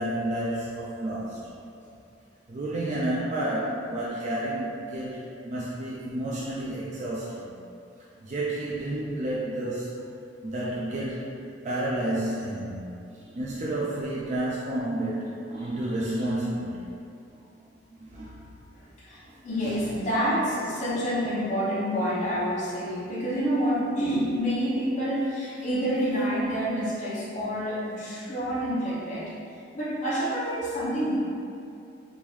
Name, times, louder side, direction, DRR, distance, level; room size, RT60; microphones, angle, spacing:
voice 1, 0.0-1.4 2.5-7.6 8.2-10.0 10.4-11.3 11.6-12.8 13.3-16.9 17.3-17.4 17.9-18.4 19.3-19.4 19.6-19.8, right 1 dB, 40° right, -6 dB, 0.4 m, -30 dB
voice 2, 18.7-29.3 29.7-31.2, equal, 45° left, -9 dB, 0.8 m, -28 dB
3.6 x 2.6 x 3.1 m, 2.6 s
head